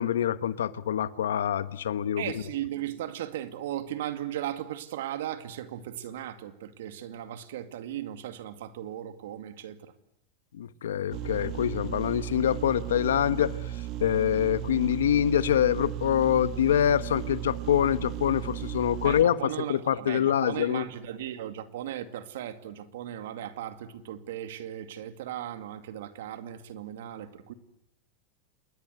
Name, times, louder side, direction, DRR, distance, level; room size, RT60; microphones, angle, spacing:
voice 1, 0.0-2.4 10.5-20.9, left 10 dB, 90° left, 1.3 m, -25 dB
voice 2, 2.2-9.9 19.0-27.5, right 11 dB, 80° right, 2.4 m, -37 dB
sound 1, 11.1-19.2, right 12 dB, 50° right, 2.4 m, -35 dB
28.0 x 21.5 x 8.2 m
hypercardioid pair, 115°, 0 cm